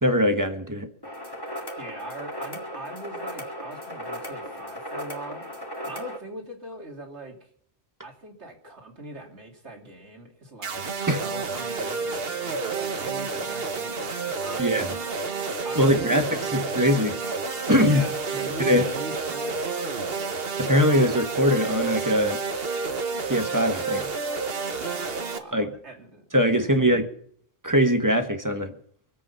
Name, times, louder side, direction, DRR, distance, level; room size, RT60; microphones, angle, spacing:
voice 1, 0.0-0.9 11.1-11.2 14.6-14.9 15.7-16.2 16.5-17.2 17.7-18.0 18.6-18.8 20.6-22.4 23.2-24.1 25.5-25.7 26.3-27.0 27.6-28.7, equal, 15° right, 6 dB, 1.4 m, -21 dB
sound 1, 1.0-6.2, equal, 20° left, 2.6 m, -36 dB
voice 2, 1.8-5.5 5.8-7.5 8.0-17.0 17.8-20.2 24.8-26.8, right 1 dB, 80° right, 1 dB, 3.3 m, -41 dB
sound 2, 10.6-25.4, right 4 dB, 60° right, 1.5 m, -30 dB
24.5 x 8.5 x 5.7 m, 0.63 s
omnidirectional pair, 1.1 m